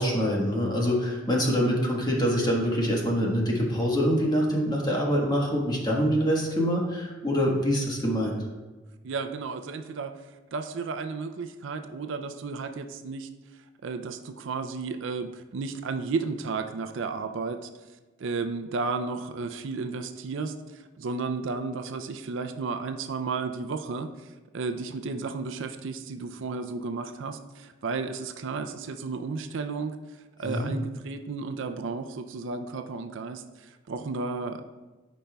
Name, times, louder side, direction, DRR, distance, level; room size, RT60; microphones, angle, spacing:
voice 1, 0.0-8.4 30.4-30.7, equal, 20° left, -2 dB, 1.4 m, -25 dB
voice 2, 9.0-10.1 10.5-13.3 13.8-34.6, right 4 dB, 70° right, 8 dB, 0.4 m, -33 dB
12.5 x 5.2 x 2.3 m, 1.2 s
head